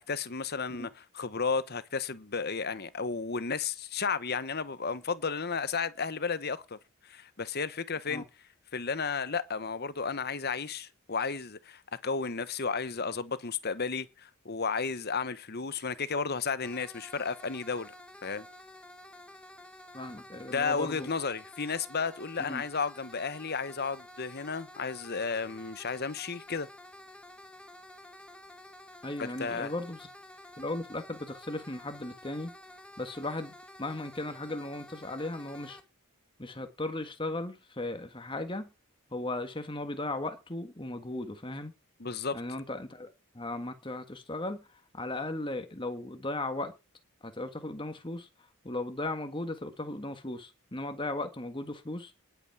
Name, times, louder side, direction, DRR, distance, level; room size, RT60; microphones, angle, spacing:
voice 1, 0.0-6.8 7.0-8.2 8.7-17.9 18.2-18.5 20.5-26.7 29.2-29.7 42.0-42.4, left 5 dB, 45° left, 1.1 m, -33 dB
sound 1, 16.6-35.8, left 1 dB, 5° left, 1.9 m, -51 dB
voice 2, 19.9-21.1 22.4-22.6 29.0-30.1 30.6-32.5 33.0-33.5 33.8-35.8 36.4-38.7 39.1-41.7 42.3-46.7 47.2-48.3 48.6-52.1, left 2 dB, 20° left, 1.6 m, -36 dB
19.5 x 8.2 x 4.8 m
head